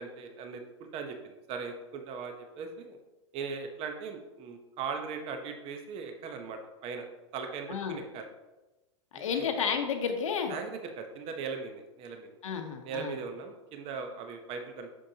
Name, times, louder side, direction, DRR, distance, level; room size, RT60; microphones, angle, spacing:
voice 1, 0.0-3.0 3.3-7.1 7.3-8.3 9.1-9.5 10.5-12.3 12.8-14.9, right 5 dB, 35° right, 5 dB, 0.9 m, -39 dB
voice 2, 9.1-10.5 12.4-13.2, left 6 dB, 85° left, 5 dB, 1.1 m, -31 dB
7.4 x 6.3 x 2.8 m, 1.1 s
hypercardioid pair, 130°, 16 cm